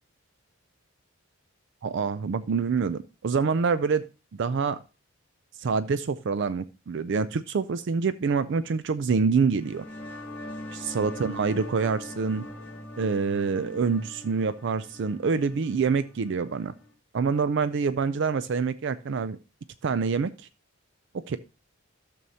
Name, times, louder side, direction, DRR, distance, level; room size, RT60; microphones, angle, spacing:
voice 1, 1.8-4.8 5.6-9.8 10.7-12.4 13.0-16.7 17.1-19.4 19.8-20.5 21.3-21.4, right 5 dB, 55° right, 14 dB, 0.4 m, -26 dB
sound 1, 9.5-16.9, left 1 dB, 10° left, 2.1 m, -42 dB
12.5 x 6.9 x 2.7 m, 0.31 s
head